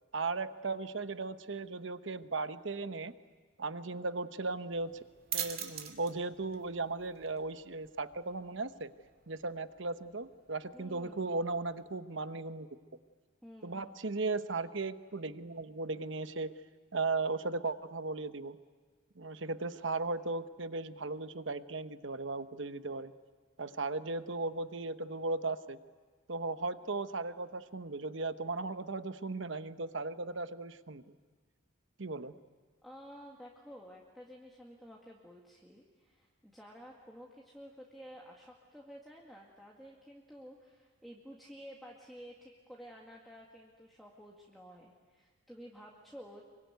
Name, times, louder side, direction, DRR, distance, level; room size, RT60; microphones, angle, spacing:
voice 1, 0.1-3.1 3.6-4.9 5.3-8.9 9.3-12.7 13.6-16.6 16.9-18.6 19.2-23.1 23.6-25.8 26.3-31.2 32.0-32.4, right 3 dB, 60° right, 11 dB, 1.0 m, -37 dB
sound 1, 4.7-12.0, right 10 dB, 45° right, 2.5 m, -46 dB
voice 2, 10.7-11.3 13.4-13.9 32.8-46.4, equal, ahead, -3 dB, 2.0 m, -52 dB
26.0 x 24.0 x 9.4 m, 1.5 s
head